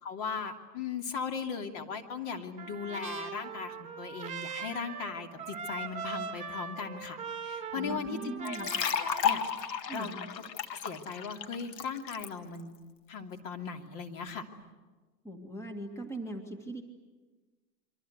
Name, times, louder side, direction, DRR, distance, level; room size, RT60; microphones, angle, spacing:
voice 1, 0.0-10.1 10.8-12.8 13.1-14.4, left 5 dB, 45° left, 4 dB, 3.0 m, -38 dB
Trumpet, 2.6-9.3, right 5 dB, 15° right, 2.8 m, -41 dB
voice 2, 7.7-8.7 9.9-10.2 15.2-16.8, right 2 dB, 5° left, 4 dB, 2.1 m, -40 dB
sound 1, 8.4-12.3, left 8 dB, 85° left, 2.0 m, -33 dB
28.5 x 24.5 x 8.1 m, 1.3 s
hypercardioid pair, 125°, 48 cm